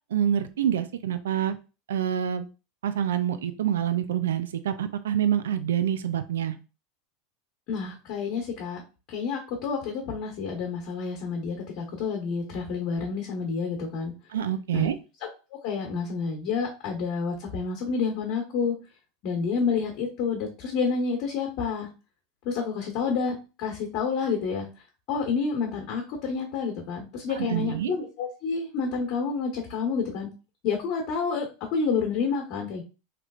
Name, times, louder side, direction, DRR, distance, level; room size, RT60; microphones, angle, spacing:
voice 1, 0.1-1.6 1.9-2.5 2.8-6.6 14.3-15.0 27.4-27.9, right 10 dB, 85° right, 10 dB, 0.4 m, -26 dB
voice 2, 7.7-8.8 9.1-14.1 14.7-15.0 15.5-18.7 19.2-21.9 22.4-24.7 25.1-30.3 30.6-31.5 31.7-32.8, left 5 dB, 55° left, 0 dB, 1.1 m, -29 dB
3.1 x 3.1 x 2.4 m, 0.31 s
hypercardioid pair, 100°, 0 cm